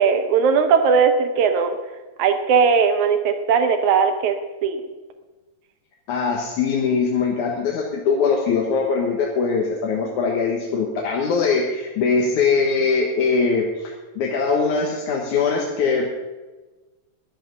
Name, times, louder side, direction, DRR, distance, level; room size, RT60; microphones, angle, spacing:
voice 1, 0.0-1.8 2.2-4.4 4.6-4.8, right 6 dB, 80° right, 7 dB, 2.4 m, -18 dB
voice 2, 6.1-16.1, left 5 dB, 80° left, -1 dB, 2.9 m, -21 dB
12.0 x 11.0 x 6.8 m, 1.2 s
omnidirectional pair, 3.4 m